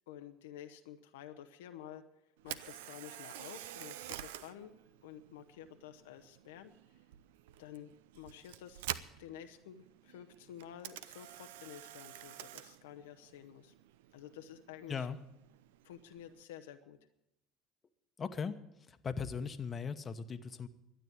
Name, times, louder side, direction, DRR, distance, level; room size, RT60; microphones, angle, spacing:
voice 1, 0.1-2.1 2.4-4.7 5.0-6.7 7.6-8.8 9.2-13.7 14.1-15.1 15.8-17.0, left 10 dB, 80° left, 7 dB, 0.7 m, -51 dB
Camera, 2.4-16.4, right 13 dB, 80° right, 0.5 m, -49 dB
voice 2, 18.2-18.6 18.9-20.7, left 6 dB, 35° left, 10 dB, 1.0 m, -38 dB
12.5 x 9.0 x 8.6 m, 0.87 s
hypercardioid pair, 70°, 0 cm